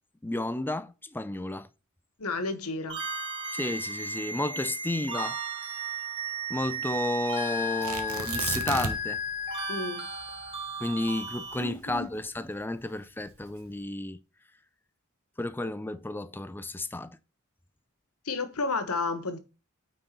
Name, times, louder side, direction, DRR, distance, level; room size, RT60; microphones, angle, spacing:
voice 1, 0.2-1.7 3.5-5.4 6.5-9.2 10.8-14.2 15.4-17.2, left 2 dB, 10° left, 0.4 m, -32 dB
voice 2, 2.2-3.0 9.7-10.1 11.6-12.1 18.2-19.4, left 3 dB, 75° left, 1.2 m, -32 dB
sound 1, 2.9-11.6, right 1 dB, 25° right, 3.3 m, -35 dB
Tearing, 7.8-9.2 9.5-9.6 10.1-12.5 13.2-13.7, right 5 dB, 70° right, 1.2 m, -34 dB
9.0 x 4.1 x 4.3 m
head